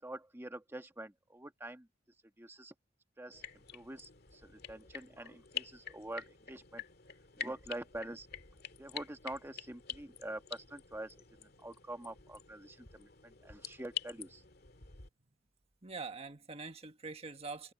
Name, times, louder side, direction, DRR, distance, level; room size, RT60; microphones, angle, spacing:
voice 1, 0.0-1.9 2.4-2.7 3.2-6.8 7.4-8.3 8.8-11.1 11.4-14.4, right 1 dB, 15° right, 1.5 m, -46 dB
sound 1, 3.3-15.1, left 8 dB, 55° left, 2.1 m, -47 dB
voice 2, 15.8-17.7, right 4 dB, 35° right, 1.6 m, -44 dB
head